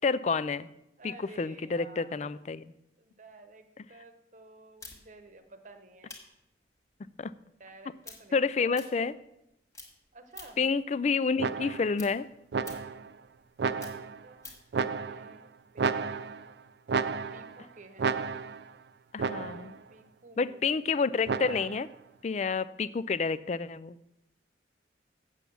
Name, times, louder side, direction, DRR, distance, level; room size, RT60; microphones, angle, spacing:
voice 1, 0.0-0.7 1.0-2.6 7.2-7.3 8.3-9.1 10.6-12.3 19.1-19.7 20.4-21.9 22.2-24.0, left 4 dB, 35° left, 16 dB, 0.3 m, -29 dB
voice 2, 1.0-2.3 3.0-6.2 7.6-9.2 10.1-10.6 14.0-14.6 14.8-15.5 17.3-18.4 19.9-20.7, right 2 dB, 40° right, 8 dB, 1.0 m, -52 dB
sound 1, 4.8-9.5 9.7-10.7 11.1-14.7, left 3 dB, 15° left, 1.5 m, -50 dB
sound 2, 11.4-12.0 12.5-13.1 13.6-14.2 14.7-15.4 15.8-16.5 16.9-17.6 18.0-18.7 19.2-19.8 21.3-21.9, right 5 dB, 60° right, 0.4 m, -32 dB
8.2 x 7.0 x 6.9 m, 0.84 s
head